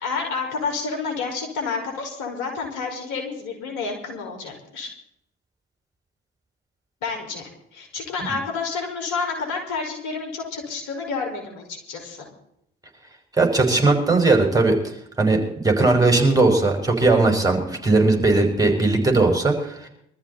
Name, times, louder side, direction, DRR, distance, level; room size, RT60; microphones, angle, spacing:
voice 1, 0.0-4.9 7.0-12.2, left 4 dB, 65° left, 2 dB, 5.7 m, -29 dB
voice 2, 13.4-14.7 15.2-19.9, right 3 dB, 10° right, 2 dB, 5.7 m, -18 dB
23.5 x 14.0 x 4.3 m, 0.75 s
hypercardioid pair, 55°, 33 cm